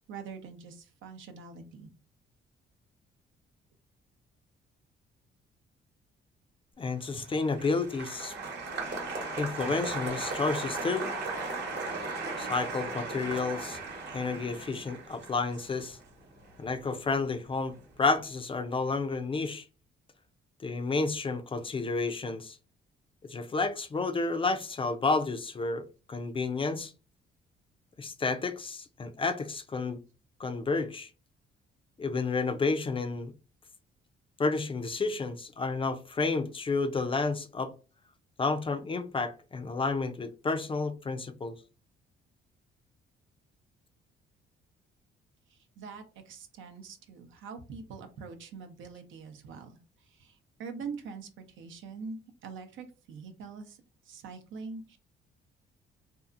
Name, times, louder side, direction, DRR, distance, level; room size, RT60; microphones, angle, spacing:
voice 1, 0.1-1.9 45.5-53.8 54.0-55.0, right 5 dB, 75° right, 0.6 m, -44 dB
voice 2, 6.8-8.4 9.4-11.1 12.4-13.8 14.1-16.0 16.6-19.6 20.6-22.6 23.2-26.9 28.0-30.0 30.4-31.1 32.0-33.3 34.4-37.7 38.4-41.5, left 3 dB, 25° left, 0.4 m, -31 dB
Applause, 7.0-17.4 17.7-18.3, right 3 dB, 60° right, 1.0 m, -37 dB
2.7 x 2.4 x 2.4 m
cardioid pair, 90°, 20 cm